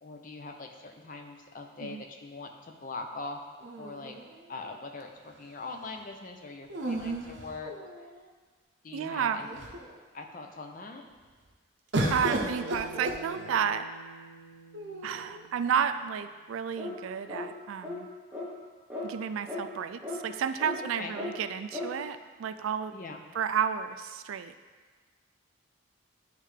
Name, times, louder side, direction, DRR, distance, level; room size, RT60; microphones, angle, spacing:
voice 1, 0.0-3.4 3.8-4.2 4.5-7.7 8.8-9.6 10.1-11.0 21.0-21.1 22.9-23.2, left 3 dB, 40° left, 4 dB, 0.5 m, -42 dB
sound 1, 3.6-4.7 6.7-8.2 9.0-9.1 9.4-10.0 11.9-13.8 14.7-15.4, right 1 dB, 60° right, 0.7 m, -34 dB
voice 2, 8.9-9.5 12.1-13.9 15.0-18.1 19.0-22.9 23.3-24.5, right 7 dB, 80° right, 10 dB, 0.3 m, -31 dB
Bass guitar, 12.0-16.4, right 2 dB, 90° left, 0.5 m, -47 dB
sound 2, 16.8-17.0 17.3-17.5 17.8-18.0 18.3-18.5 18.9-19.1 19.5-19.6 20.0-20.2 20.6-20.8 21.1-21.3 21.7-21.9, left 2 dB, 5° right, 1.0 m, -36 dB
9.3 x 3.3 x 3.3 m, 1.4 s
head